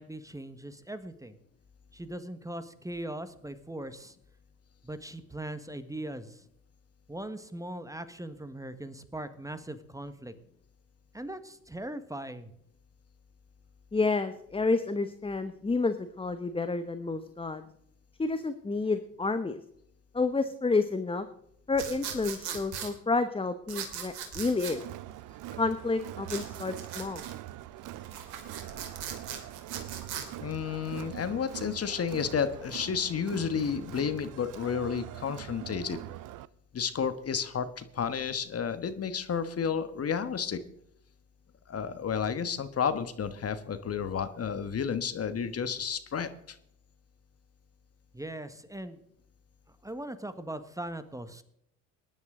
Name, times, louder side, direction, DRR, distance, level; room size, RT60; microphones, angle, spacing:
voice 1, 0.0-1.4 1.9-4.1 4.8-6.4 7.1-10.3 11.1-12.5 48.1-49.0 49.8-51.4, right 1 dB, 10° right, 12 dB, 1.4 m, -40 dB
voice 2, 13.9-17.6 18.2-19.6 20.1-21.3 21.7-24.8 25.6-27.2, left 3 dB, 10° left, 10 dB, 1.0 m, -30 dB
sound 1, 21.7-22.9 23.7-24.8 26.2-27.3 28.0-30.3, right 8 dB, 65° right, 3.0 m, -39 dB
Crowd, 24.7-36.5, right 15 dB, 45° right, 0.7 m, -43 dB
voice 3, 30.4-36.0 36.7-40.6 41.7-46.6, left 7 dB, 35° left, 10 dB, 1.4 m, -31 dB
20.0 x 10.5 x 3.8 m, 0.74 s
hypercardioid pair, 60°, 43 cm